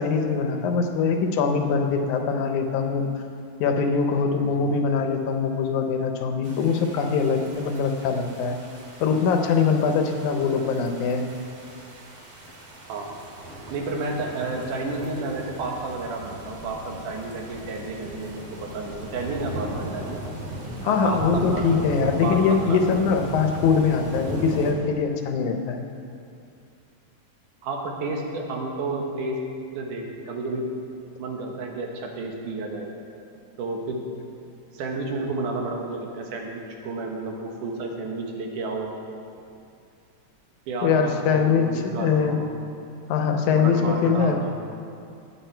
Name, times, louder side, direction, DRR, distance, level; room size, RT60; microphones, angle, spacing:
voice 1, 0.0-3.2 3.6-8.6 9.0-11.3 20.8-25.9 40.8-42.4 43.1-44.6, left 5 dB, 80° left, 5 dB, 2.3 m, -23 dB
sound 1, 6.4-24.7, right 1 dB, 60° right, 2.9 m, -37 dB
voice 2, 13.7-20.2 20.9-22.0 22.2-22.9 27.6-29.4 29.7-30.7 31.2-32.9 33.6-34.0 34.7-38.9 40.7-42.5 43.5-44.6, right 3 dB, 90° right, 1 dB, 2.8 m, -31 dB
18.5 x 7.5 x 4.5 m, 2.5 s
omnidirectional pair, 3.5 m